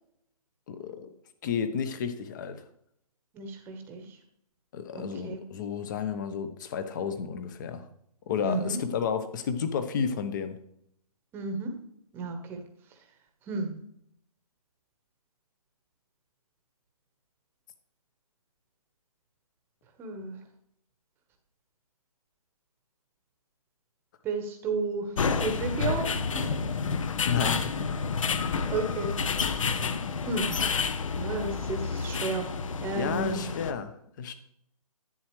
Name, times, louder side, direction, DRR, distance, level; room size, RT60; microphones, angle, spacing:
voice 1, 0.7-1.1 1.4-2.6 4.7-7.8 8.3-10.6 27.2-27.7 28.1-28.4 32.9-34.3, left 7 dB, 30° left, 10 dB, 1.0 m, -32 dB
voice 2, 3.3-4.2 4.9-5.4 8.4-8.8 11.3-11.7 12.1-12.6 13.5-13.7 20.0-20.4 24.2-26.6 28.5-29.5 30.3-30.6 31.2-32.5 32.8-33.4, right 3 dB, 10° right, 5 dB, 1.1 m, -33 dB
sound 1, 25.2-33.7, left 5 dB, 55° left, 0.9 m, -29 dB
11.0 x 8.7 x 3.2 m, 0.73 s
hypercardioid pair, 155°, 19 cm